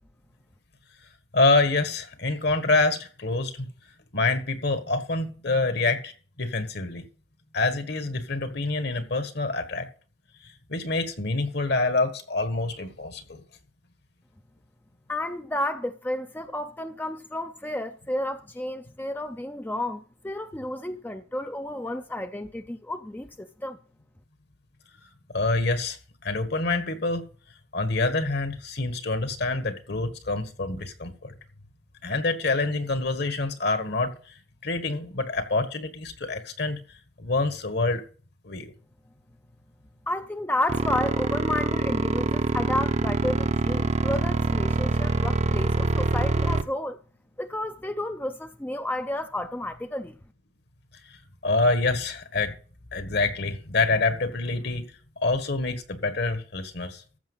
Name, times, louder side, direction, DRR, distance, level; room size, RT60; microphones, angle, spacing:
voice 1, 1.3-3.7 4.1-6.1 6.4-7.0 7.5-9.9 10.7-13.4 25.3-26.0 26.2-27.2 27.7-31.4 32.0-34.1 34.6-36.8 37.2-38.0 38.4-38.7 51.4-52.6 52.9-54.8 55.2-57.0, left 3 dB, 55° left, 1.6 m, -26 dB
voice 2, 15.1-23.8 40.1-47.0 47.4-50.1, left 1 dB, 10° left, 0.5 m, -31 dB
sound 1, 40.7-46.6, right 2 dB, 35° right, 0.7 m, -25 dB
14.5 x 5.8 x 5.5 m
head